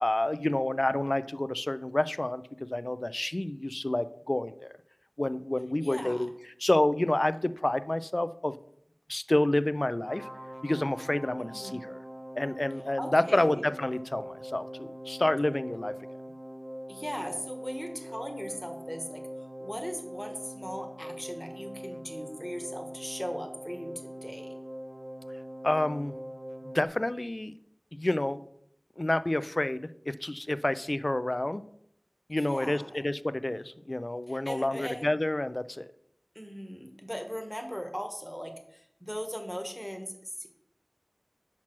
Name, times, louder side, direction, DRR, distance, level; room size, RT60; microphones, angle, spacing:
voice 1, 0.0-4.7 5.2-6.3 6.6-8.5 9.1-10.3 10.6-12.0 12.4-15.9 25.6-26.1 26.6-27.5 27.9-28.4 29.0-31.6 32.3-35.9, left 1 dB, 45° left, 14 dB, 0.3 m, -29 dB
voice 2, 5.8-6.3 11.4-11.9 13.0-13.6 16.9-19.2 19.6-24.5 32.3-33.0 34.3-35.1 36.3-40.5, equal, 5° left, 5 dB, 1.1 m, -39 dB
sound 1, 10.1-26.9, equal, 15° right, 0.5 m, -42 dB
6.0 x 5.9 x 4.5 m, 0.70 s
wide cardioid pair, 45°, 0 cm